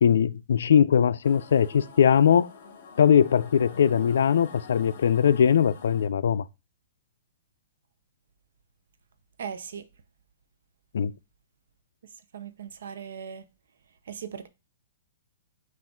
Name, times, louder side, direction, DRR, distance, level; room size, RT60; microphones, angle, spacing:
voice 1, 0.0-2.5 3.0-6.4 10.9-11.1, left 8 dB, 85° left, 0.3 m, -20 dB
sound 1, 1.2-6.1, left 5 dB, 50° left, 0.8 m, -47 dB
voice 2, 9.4-9.9 12.3-13.4 14.1-14.5, right 7 dB, 80° right, 0.6 m, -38 dB
5.8 x 2.5 x 3.7 m
hypercardioid pair, 175°, 0 cm